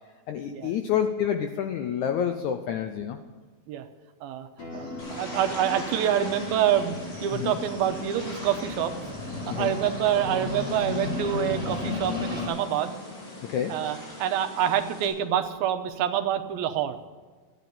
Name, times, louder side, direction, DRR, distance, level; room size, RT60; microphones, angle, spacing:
voice 1, 0.3-3.2 7.3-7.6 9.5-9.8 13.4-13.8, left 8 dB, 80° left, 7 dB, 1.7 m, -28 dB
Acoustic guitar, 4.6-9.8, left 2 dB, 45° left, 5.8 m, -46 dB
sound 1, 4.7-12.5, left 3 dB, 15° left, 3.4 m, -35 dB
voice 2, 4.7-7.0 7.2-9.0 9.5-13.0 13.7-17.0, right 10 dB, 85° right, 8 dB, 2.7 m, -26 dB
sound 2, 5.0-15.1, left 1 dB, 65° left, 5.1 m, -41 dB
13.5 x 10.5 x 6.9 m, 1.4 s
omnidirectional pair, 4.2 m